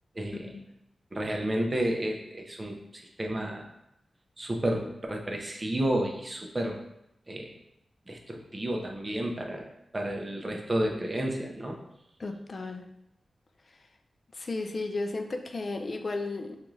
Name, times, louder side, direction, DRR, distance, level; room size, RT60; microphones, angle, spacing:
voice 1, 0.1-0.6 1.1-3.7 4.4-6.8 7.3-7.5 8.1-9.7 9.9-11.8, right 1 dB, 25° right, 1 dB, 0.5 m, -31 dB
voice 2, 12.2-12.9 14.3-16.6, left 3 dB, 45° left, 5 dB, 0.4 m, -34 dB
5.1 x 2.4 x 3.0 m, 0.82 s
wide cardioid pair, 105°, 0 cm